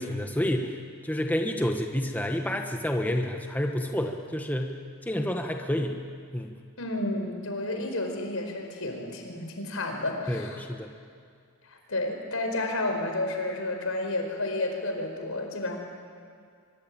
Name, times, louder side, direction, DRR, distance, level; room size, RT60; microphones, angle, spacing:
voice 1, 0.0-4.8 5.0-6.0 6.3-6.6 10.3-10.9, left 1 dB, 10° left, 3 dB, 1.2 m, -29 dB
voice 2, 6.8-10.6 11.7-15.8, left 2 dB, 80° left, 3 dB, 4.8 m, -31 dB
24.0 x 23.0 x 8.8 m, 2.2 s
head